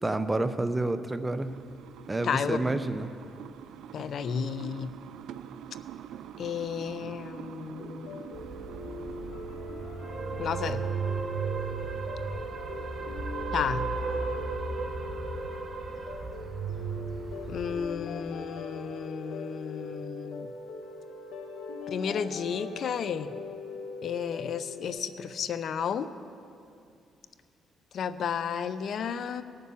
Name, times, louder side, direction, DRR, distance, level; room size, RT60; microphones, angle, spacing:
voice 1, 0.0-1.5 2.1-3.1, right 2 dB, 15° right, 10 dB, 0.7 m, -29 dB
sound 1, 1.4-16.4, right 9 dB, 80° right, 0.4 m, -48 dB
voice 2, 2.2-2.8 3.9-4.9 6.4-8.3 10.4-10.9 13.5-13.9 17.5-20.5 21.9-23.3 24.0-26.1 27.9-29.4, left 7 dB, 60° left, 13 dB, 0.6 m, -32 dB
sound 2, 7.8-24.9, left 3 dB, 80° left, 1.5 m, -41 dB
sound 3, 8.3-17.9, right 5 dB, 45° right, 1.3 m, -35 dB
17.5 x 6.7 x 7.1 m, 2.5 s
cardioid pair, 90°, 0 cm